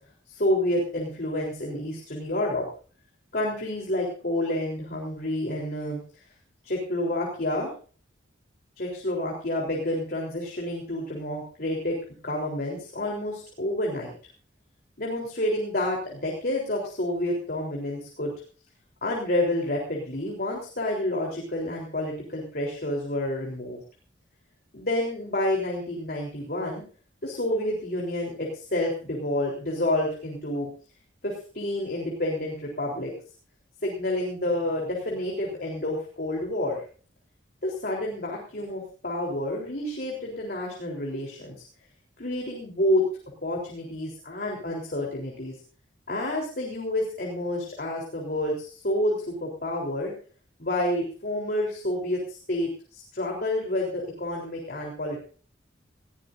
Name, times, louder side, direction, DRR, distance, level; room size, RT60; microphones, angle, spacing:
voice 1, 0.3-2.7 3.3-6.0 6.6-7.7 8.8-12.0 12.2-14.1 15.0-18.3 19.0-23.8 24.7-26.8 27.2-30.7 31.2-33.1 33.8-36.8 37.6-41.6 42.2-43.1 43.4-45.5 46.1-50.1 50.6-55.2, left 1 dB, 50° left, -1 dB, 3.9 m, -29 dB
20.0 x 16.0 x 2.7 m, 0.41 s
head